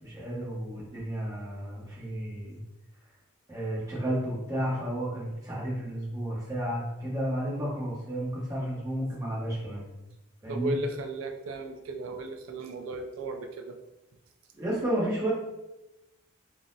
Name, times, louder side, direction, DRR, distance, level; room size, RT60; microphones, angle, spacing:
voice 1, 0.0-2.6 3.5-9.8 10.4-10.7 14.5-15.3, right 1 dB, 15° right, -6 dB, 0.9 m, -32 dB
voice 2, 10.5-13.8, right 2 dB, 65° right, 5 dB, 0.3 m, -35 dB
3.7 x 2.0 x 2.6 m, 0.96 s
head